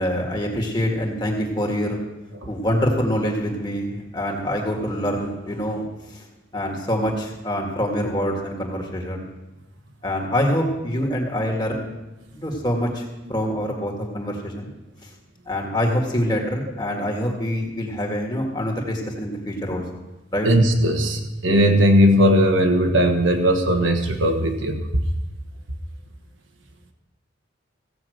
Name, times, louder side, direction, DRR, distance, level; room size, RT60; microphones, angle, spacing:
voice 1, 0.0-2.0 2.5-6.2 6.5-9.2 10.0-11.9 12.4-13.0 13.3-14.7 15.5-19.8 20.3-20.5, equal, 25° left, 0 dB, 1.9 m, -25 dB
voice 2, 20.4-24.8, equal, 80° right, 5 dB, 1.5 m, -18 dB
15.5 x 5.9 x 7.8 m, 1.0 s
head